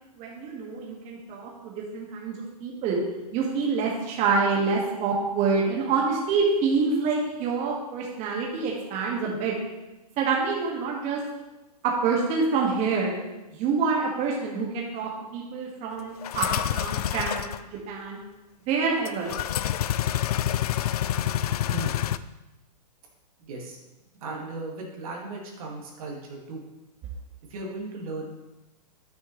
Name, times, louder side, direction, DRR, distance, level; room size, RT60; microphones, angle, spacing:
voice 1, 0.0-3.0 3.3-9.5 10.2-11.2 11.8-13.1 13.5-17.5 17.9-18.2 18.7-19.3, right 4 dB, 30° right, -2 dB, 1.9 m, -26 dB
sound 1, 16.2-17.6 19.1-22.2, left 11 dB, 65° left, 0.4 m, -27 dB
voice 2, 23.4-23.8 24.1-26.6 27.5-28.3, right 2 dB, 60° right, 0 dB, 2.0 m, -36 dB
11.5 x 6.5 x 3.2 m, 1.0 s
hypercardioid pair, 125°, 21 cm